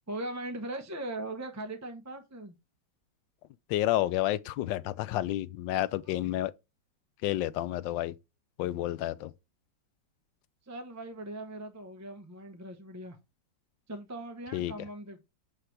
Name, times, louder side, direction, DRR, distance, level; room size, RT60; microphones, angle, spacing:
voice 1, 0.1-2.5 6.0-6.2 10.6-13.2 13.9-15.2, right 1 dB, 15° right, 0.6 m, -40 dB
voice 2, 3.7-6.5 7.2-8.1 8.6-9.3 14.5-14.7, left 14 dB, 80° left, 1.3 m, -30 dB
8.7 x 3.3 x 4.7 m
omnidirectional pair, 2.0 m